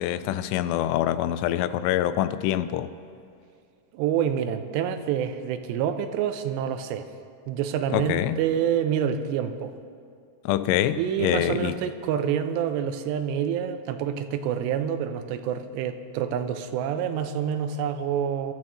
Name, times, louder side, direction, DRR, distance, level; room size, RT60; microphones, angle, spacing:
voice 1, 0.0-2.9 7.9-8.4 10.5-11.8, left 12 dB, 85° left, 2.7 m, -25 dB
voice 2, 3.9-7.1 7.5-9.7 11.0-18.5, right 8 dB, 90° right, 2.9 m, -27 dB
24.5 x 12.5 x 3.0 m
omnidirectional pair, 4.8 m